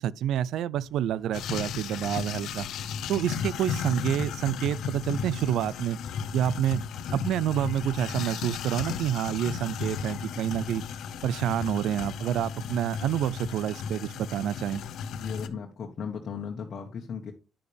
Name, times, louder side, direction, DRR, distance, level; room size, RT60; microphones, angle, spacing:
voice 1, 0.0-2.7 3.1-6.0 6.3-6.8 7.1-10.8 11.2-14.8, right 11 dB, 80° right, 0.4 m, -28 dB
sound 1, 0.7-11.3, left 3 dB, 5° left, 4.0 m, -62 dB
sound 2, 1.3-15.5, left 7 dB, 75° left, 0.8 m, -35 dB
voice 2, 15.1-17.3, left 6 dB, 55° left, 1.3 m, -36 dB
10.0 x 6.7 x 3.4 m
cardioid pair, 90°, 0 cm